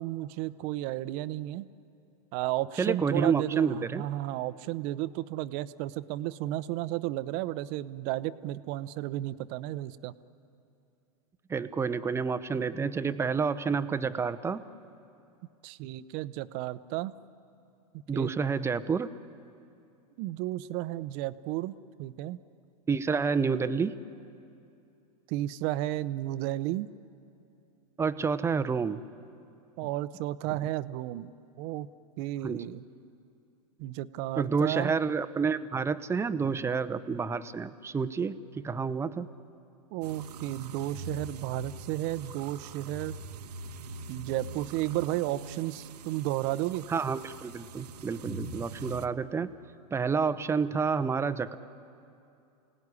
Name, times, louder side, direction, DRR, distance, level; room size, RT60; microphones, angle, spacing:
voice 1, 0.0-1.7 2.3-10.1 15.6-17.1 18.1-18.3 20.2-22.4 25.3-26.9 29.8-31.3 31.6-31.9 32.2-32.8 33.8-34.9 39.9-43.2 44.1-46.9, right 15 dB, 45° right, 15 dB, 0.8 m, -33 dB
voice 2, 2.8-4.0 11.5-14.6 18.1-19.1 22.9-23.9 28.0-29.0 32.4-32.6 34.4-39.3 46.9-49.5 49.9-51.5, right 5 dB, 15° right, 13 dB, 0.8 m, -29 dB
sound 1, 40.0-49.1, right 3 dB, 75° right, 1.1 m, -43 dB
28.5 x 18.0 x 9.8 m, 2.6 s
hypercardioid pair, 115°, 20 cm